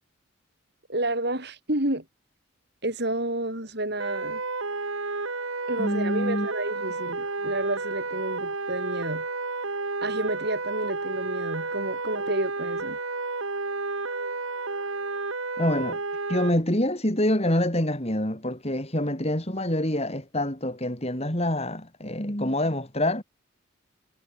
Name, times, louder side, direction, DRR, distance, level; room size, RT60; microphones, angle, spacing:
voice 1, 0.9-2.0 2.8-4.4 5.7-9.2 10.0-13.0, right 1 dB, 50° right, 4.8 m, -30 dB
sound 1, 4.0-16.5, right 3 dB, 70° right, 2.5 m, -31 dB
voice 2, 5.8-6.5 15.6-16.0 16.3-23.2, left 1 dB, 30° left, 3.8 m, -26 dB
head